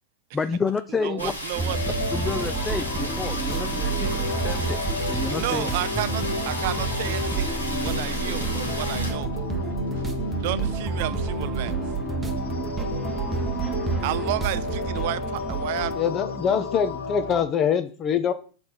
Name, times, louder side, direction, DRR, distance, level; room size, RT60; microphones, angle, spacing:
voice 1, 0.3-1.3 2.1-5.7, left 5 dB, 20° left, 0.4 m, -30 dB
voice 2, 1.0-1.8 5.4-9.3 10.4-11.7 14.0-16.0, right 16 dB, 55° right, 0.5 m, -31 dB
sound 1, 1.2-9.1, left 1 dB, 90° left, 1.8 m, -34 dB
sound 2, 1.5-16.0, right 5 dB, 15° right, 0.9 m, -30 dB
sound 3, 1.7-17.4, left 4 dB, 70° left, 1.2 m, -32 dB
voice 3, 15.9-18.3, left 7 dB, 35° left, 0.9 m, -24 dB
6.8 x 3.4 x 6.0 m
figure-of-eight pair, 90°, 0 cm